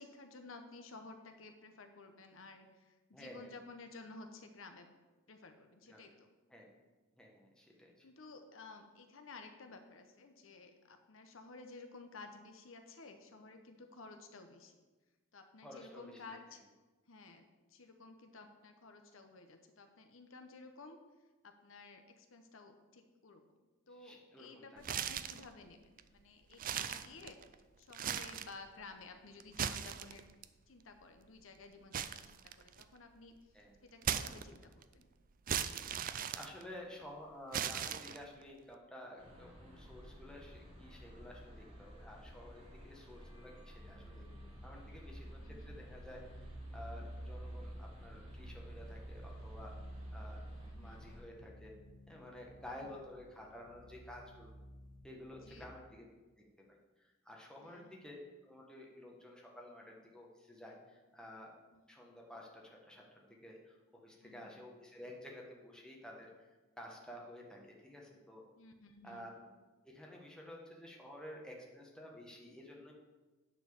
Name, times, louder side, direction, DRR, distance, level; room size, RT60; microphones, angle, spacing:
voice 1, 0.0-4.9 5.3-6.3 8.0-14.8 15.3-16.6 17.1-21.0 21.4-23.4 23.9-25.8 26.1-27.4 27.8-30.3 30.7-33.3 33.8-35.1 45.4-45.8 50.6-51.1 52.7-53.0 55.4-55.7 57.6-58.1 61.7-61.8 64.2-64.6 68.6-69.3, left 3 dB, 70° left, 6 dB, 0.9 m, -54 dB
voice 2, 3.1-3.5 5.9-6.0 6.5-6.8 7.1-8.0 15.6-16.4 24.0-24.8 33.5-33.7 36.3-44.2 44.6-49.7 50.1-51.7 52.1-54.6 55.0-56.1 56.7-58.2 58.4-61.5 61.9-66.3 66.8-68.4 69.0-69.4 69.8-72.9, left 1 dB, 5° left, -1 dB, 1.4 m, -52 dB
sound 1, 24.8-25.5 26.0-26.1 26.5-27.5 27.9-28.6 29.4-30.4 31.9-33.0 34.0-34.8 35.5-37.0 37.5-38.4, right 8 dB, 40° right, 0.4 m, -38 dB
sound 2, 39.2-51.2, equal, 25° right, 2.4 m, -54 dB
sound 3, 43.8-55.6, right 1 dB, 40° left, 1.5 m, -51 dB
9.8 x 4.6 x 6.9 m, 1.2 s
head